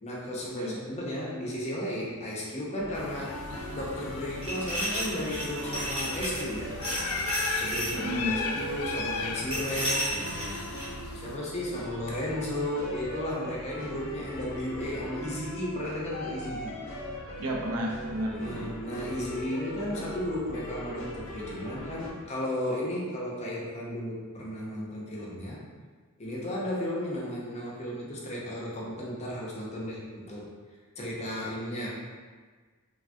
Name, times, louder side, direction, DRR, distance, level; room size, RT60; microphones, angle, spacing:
voice 1, 0.0-3.4 3.7-6.7 7.4-10.7 11.1-16.8 18.3-25.6 26.2-30.5 31.0-31.9, left 1 dB, 30° left, -5 dB, 0.6 m, -34 dB
sound 1, 2.8-22.1, equal, 60° left, 0.7 m, -40 dB
sound 2, 2.9-11.4, left 4 dB, 80° left, 0.3 m, -37 dB
sound 3, 4.4-6.5 6.8-8.0 9.5-10.9, equal, 30° right, 1.0 m, -33 dB
voice 2, 7.9-8.4 17.4-18.7, equal, 75° right, 0 dB, 0.5 m, -32 dB
3.3 x 2.2 x 2.5 m, 1.4 s
head